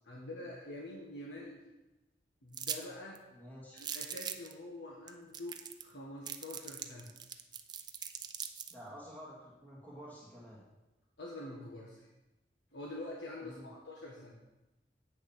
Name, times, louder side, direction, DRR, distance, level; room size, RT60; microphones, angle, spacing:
voice 1, 0.0-1.6 2.4-3.2 3.8-7.1 11.2-12.1 12.7-14.3, left 1 dB, 85° left, -3 dB, 1.5 m, -46 dB
sound 1, 2.5-2.8 3.1-3.2 3.8-4.5 5.1-5.2 5.3-5.9 6.3-8.7, right 8 dB, 25° right, 0.5 m, -40 dB
voice 2, 3.3-3.9 8.7-10.6 13.4-13.7, equal, 10° left, -7 dB, 1.8 m, -50 dB
8.6 x 6.5 x 5.8 m, 1.0 s
head